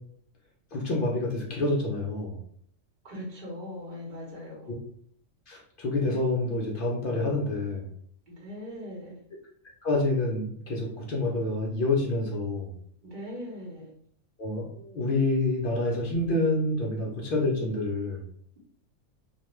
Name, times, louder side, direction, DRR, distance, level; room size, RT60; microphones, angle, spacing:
voice 1, 0.7-2.4 4.7-4.8 5.5-7.9 9.8-12.7 14.4-18.2, left 2 dB, 60° left, -2 dB, 0.5 m, -28 dB
voice 2, 3.0-4.8 8.3-9.2 13.0-13.9, left 1 dB, 40° right, -4 dB, 0.9 m, -40 dB
2.4 x 2.2 x 3.0 m, 0.63 s
omnidirectional pair, 1.4 m